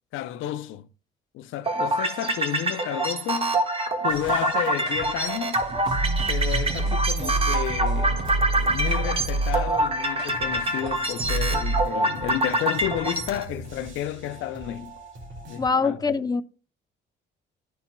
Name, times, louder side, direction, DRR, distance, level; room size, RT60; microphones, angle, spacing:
voice 1, 0.1-0.9 1.3-5.6 6.3-14.9 15.5-16.1, left 12 dB, 90° left, 0.5 m, -32 dB
sound 1, 1.7-13.4, right 1 dB, 30° right, 1.5 m, -26 dB
sound 2, 4.1-7.1 7.3-9.5 9.7-15.7, right 1 dB, 75° right, 2.0 m, -43 dB
sound 3, 4.8-9.7 10.2-10.3 10.9-11.0 11.2-11.8, right 2 dB, 55° right, 2.7 m, -27 dB
voice 2, 15.6-16.4, left 4 dB, 20° left, 0.6 m, -23 dB
11.5 x 4.3 x 2.2 m
cardioid pair, 90°, 20 cm